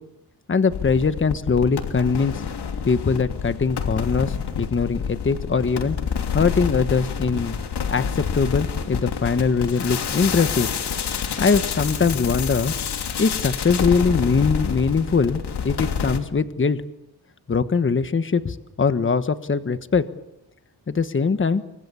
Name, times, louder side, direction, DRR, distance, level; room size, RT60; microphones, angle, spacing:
voice 1, 0.5-2.3 2.8-6.0 6.3-7.6 7.9-10.7 11.4-12.7 13.2-16.8 17.5-20.0 20.9-21.6, left 5 dB, 30° left, 11 dB, 1.3 m, -21 dB
sound 1, 0.7-16.2, left 7 dB, 85° left, 3.1 m, -28 dB
29.0 x 25.0 x 7.0 m, 0.86 s
cardioid pair, 105°, 39 cm